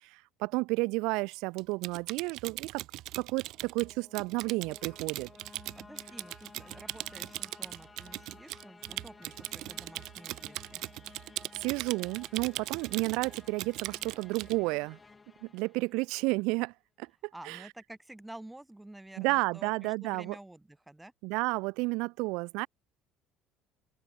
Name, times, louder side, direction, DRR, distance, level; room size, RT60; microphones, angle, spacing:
voice 1, 0.0-2.8 3.2-5.3 11.6-15.0 15.4-17.1 17.4-17.6 19.2-20.4 21.2-22.7, right 25 dB, 80° right, 0.4 m, -31 dB
Typing, 1.6-14.6, right 17 dB, 60° right, 1.0 m, -40 dB
sound 1, 3.3-16.4, left 4 dB, 15° left, 1.8 m, -55 dB
voice 2, 5.7-10.8 17.3-21.1, right 1 dB, 5° right, 1.6 m, -50 dB
open air
cardioid pair, 170°, 0 cm